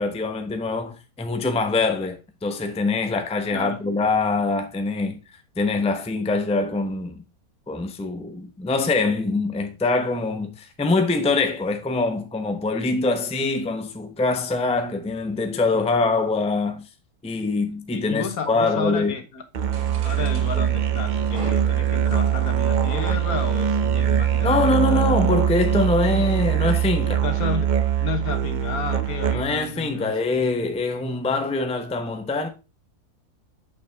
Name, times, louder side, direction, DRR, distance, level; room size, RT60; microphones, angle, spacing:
voice 1, 0.0-5.2 5.6-7.2 7.7-16.9 17.2-19.1 24.4-27.2 29.3-32.5, left 3 dB, 5° left, 0.6 m, -24 dB
voice 2, 17.9-19.4 20.0-25.0 27.2-27.7 28.0-30.1, left 6 dB, 70° left, 1.5 m, -32 dB
Musical instrument, 19.5-29.7, right 9 dB, 70° right, 0.4 m, -22 dB
sound 1, 19.7-25.7, right 4 dB, 50° right, 1.4 m, -41 dB
6.9 x 5.8 x 3.4 m
omnidirectional pair, 1.6 m